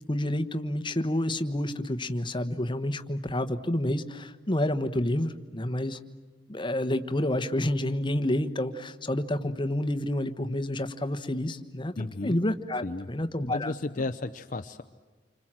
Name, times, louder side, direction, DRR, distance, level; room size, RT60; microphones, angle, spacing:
voice 1, 0.1-6.0 6.5-11.9 12.2-13.7, left 1 dB, 25° left, 9 dB, 1.2 m, -29 dB
voice 2, 12.0-12.4 12.8-13.1 13.5-14.8, left 2 dB, 45° left, 6 dB, 0.7 m, -33 dB
28.5 x 25.5 x 7.6 m, 1.3 s
head